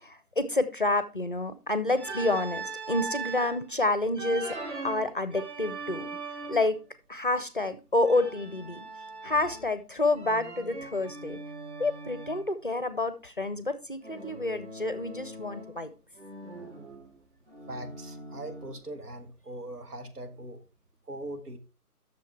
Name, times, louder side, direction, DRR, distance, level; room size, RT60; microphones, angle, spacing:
voice 1, 0.0-4.6 4.8-6.1 6.5-6.8 7.1-8.8 9.2-11.4 11.8-15.9, left 2 dB, 35° left, 0.5 m, -29 dB
Organ, 2.0-3.6 4.1-6.8 8.1-9.8 10.2-12.5 14.0-15.8 16.1-18.9, right 3 dB, 50° right, 2.3 m, -40 dB
voice 2, 17.7-20.6 21.1-21.6, right 1 dB, 75° right, 1.9 m, -40 dB
8.1 x 6.6 x 4.6 m
figure-of-eight pair, 155°, 46 cm